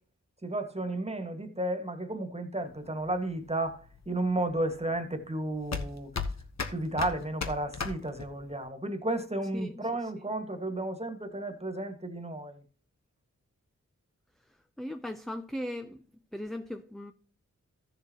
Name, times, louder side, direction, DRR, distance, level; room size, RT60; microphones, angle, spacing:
voice 1, 0.4-6.1 6.7-12.6, right 2 dB, 20° right, 1.7 m, -33 dB
sound 1, 2.6-8.6, left 5 dB, 60° left, 1.3 m, -37 dB
voice 2, 14.8-16.0 16.3-17.1, left 1 dB, ahead, 0.5 m, -37 dB
14.5 x 6.8 x 2.9 m
wide cardioid pair, 75°, 30 cm